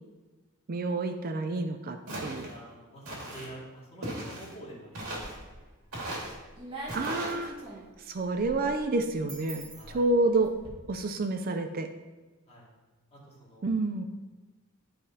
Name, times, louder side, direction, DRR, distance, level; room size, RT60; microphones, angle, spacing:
voice 1, 0.7-2.5 6.9-7.5 8.0-10.5 10.9-11.9 13.6-14.1, right 2 dB, 45° right, 7 dB, 0.4 m, -29 dB
Walk footsteps, 2.1-2.5 3.0-3.5 4.0-4.5 4.9-5.4 5.9-6.3 6.9-7.3, right 1 dB, 85° right, 2.0 m, -37 dB
voice 2, 2.4-5.6 5.8-6.0 9.7-10.0 12.5-12.7 13.1-13.7, right 1 dB, 30° left, -6 dB, 2.2 m, -48 dB
sound 1, 4.9-5.6 6.1-10.7, right 1 dB, 25° right, 1.6 m, -45 dB
11.0 x 5.0 x 2.8 m, 1.2 s
head